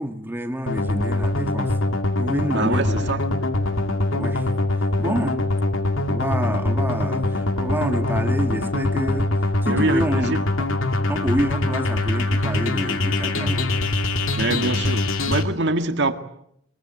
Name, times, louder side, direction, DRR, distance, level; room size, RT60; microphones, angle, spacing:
voice 1, 0.0-1.7 2.2-3.1 4.1-4.5 4.8-5.4 6.1-9.3 9.6-10.7 11.1-13.8, equal, 10° right, 1.8 m, -28 dB
sound 1, 0.7-15.4, left 2 dB, 75° left, 2.5 m, -23 dB
voice 2, 2.5-3.2 9.7-10.4 14.3-16.2, right 2 dB, 55° right, 1.9 m, -24 dB
23.0 x 22.5 x 9.1 m
head